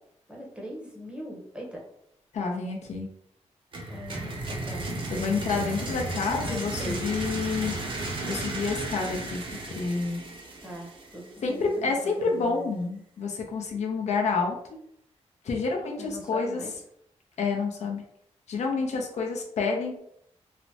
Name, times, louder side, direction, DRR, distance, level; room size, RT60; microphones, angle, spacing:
voice 1, 0.3-1.8 3.9-4.9 6.4-7.1 10.6-12.7 15.8-16.7, equal, 10° right, -2 dB, 0.7 m, -40 dB
voice 2, 2.3-3.1 5.1-7.8 8.2-10.2 11.4-14.6 15.4-16.6 17.4-18.0 18.5-20.0, left 4 dB, 75° left, 1 dB, 0.6 m, -29 dB
sound 1, 3.7-11.5, right 2 dB, 45° right, 0.5 m, -34 dB
3.2 x 2.0 x 2.7 m, 0.73 s
wide cardioid pair, 145°, 12 cm